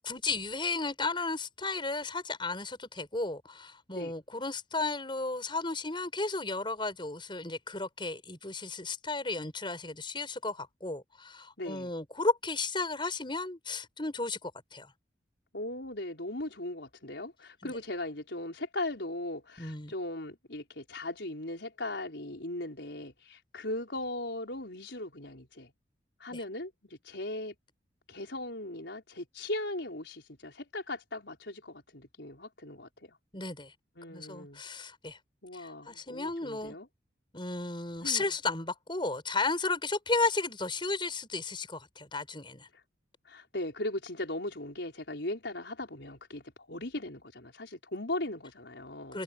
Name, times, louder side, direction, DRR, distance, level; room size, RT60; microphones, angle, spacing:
voice 1, 0.0-14.9 19.6-19.9 26.3-26.4 33.3-33.7 34.1-35.2 35.5-36.8 37.3-42.7 49.1-49.2, left 3 dB, 25° left, 5.6 m, -34 dB
voice 2, 11.6-11.9 15.5-25.7 26.2-27.5 28.1-33.2 34.0-34.6 35.4-36.9 38.0-38.3 43.2-49.2, left 1 dB, 70° left, 5.0 m, -38 dB
head